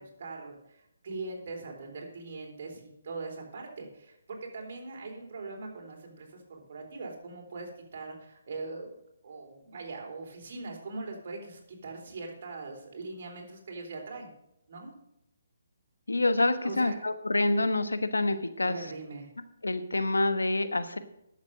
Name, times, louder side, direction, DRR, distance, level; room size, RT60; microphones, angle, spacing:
voice 1, 0.0-8.9 9.2-14.3 14.7-14.9 16.6-17.0 18.6-19.3, right 3 dB, 50° right, 0 dB, 3.8 m, -41 dB
voice 2, 16.1-18.8 19.6-21.0, left 2 dB, 90° left, 11 dB, 1.1 m, -27 dB
11.0 x 7.3 x 6.5 m, 0.83 s
figure-of-eight pair, 150°, 0 cm